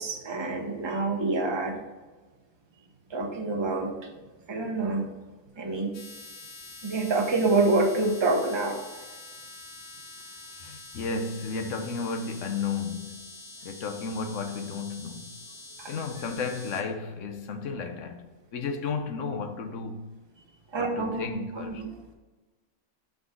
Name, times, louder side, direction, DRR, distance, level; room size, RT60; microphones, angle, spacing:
voice 1, 0.0-1.8 3.1-4.1 4.5-5.1 5.6-5.9 6.8-8.9 15.8-15.9 20.7-21.3 21.5-21.9, right 3 dB, 25° right, 0.9 m, -27 dB
sound 1, 5.9-16.8, left 2 dB, 45° left, 1.0 m, -46 dB
voice 2, 10.6-13.3 13.6-15.4 15.9-18.3 18.5-20.2 20.8-21.8, left 4 dB, 70° left, 1.1 m, -33 dB
5.9 x 3.9 x 4.9 m
omnidirectional pair, 1.4 m